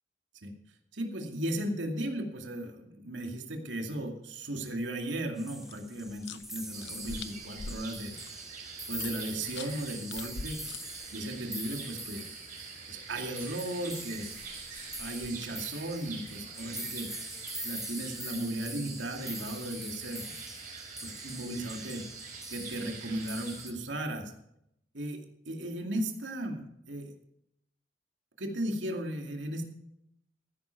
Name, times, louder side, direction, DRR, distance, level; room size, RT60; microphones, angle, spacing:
voice 1, 0.9-8.2 8.9-10.6 11.1-12.3 12.9-14.3 15.0-17.3 17.6-20.3 21.0-22.1 22.5-24.3 24.9-27.1 28.4-29.6, right 1 dB, 80° right, 3 dB, 2.4 m, -36 dB
sound 1, 5.4-23.7, right 1 dB, ahead, 0.9 m, -44 dB
sound 2, 5.6-11.6 14.1-15.6, left 5 dB, 65° left, 0.7 m, -46 dB
sound 3, 6.7-23.7, right 5 dB, 45° right, 4.6 m, -45 dB
15.0 x 10.5 x 4.6 m, 0.76 s
head